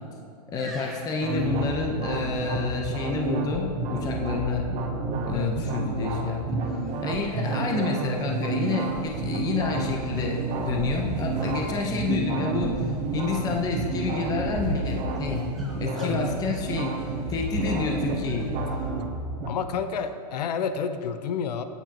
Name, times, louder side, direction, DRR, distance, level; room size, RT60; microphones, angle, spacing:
voice 1, 0.5-4.7 5.2-6.4 7.0-12.8 13.1-15.4 15.8-16.9 17.3-18.5, left 4 dB, 20° left, 1 dB, 1.0 m, -29 dB
sound 1, 0.6-2.3 5.5-5.9 6.6-7.5 8.1-9.0 9.7-9.8 10.1-10.6 10.8-11.4 15.1-17.6 18.2-19.0 19.9-20.1, right 1 dB, ahead, 1.5 m, -50 dB
sound 2, 1.2-19.5, right 3 dB, 25° right, 1.2 m, -30 dB
voice 2, 5.3-5.7 15.9-16.2 19.5-21.6, left 6 dB, 75° left, 9 dB, 0.8 m, -30 dB
sound 3, 6.8-18.9, right 4 dB, 75° right, 1.6 m, -45 dB
16.0 x 9.4 x 3.0 m, 2.4 s
hypercardioid pair, 150°, 21 cm